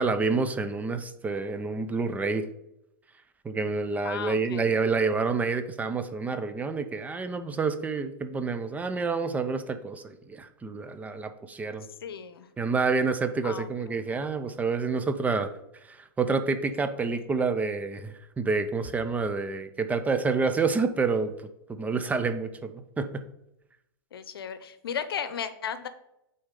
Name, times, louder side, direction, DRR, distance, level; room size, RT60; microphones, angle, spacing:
voice 1, 0.0-2.5 3.4-11.9 12.6-15.5 15.8-21.3 21.7-23.2, right 4 dB, 10° right, 9 dB, 0.5 m, -28 dB
voice 2, 4.0-4.7 12.0-12.5 13.4-14.1 24.1-25.9, left 7 dB, 85° left, 12 dB, 0.7 m, -35 dB
8.7 x 4.2 x 3.7 m, 0.85 s
hypercardioid pair, 125°, 12 cm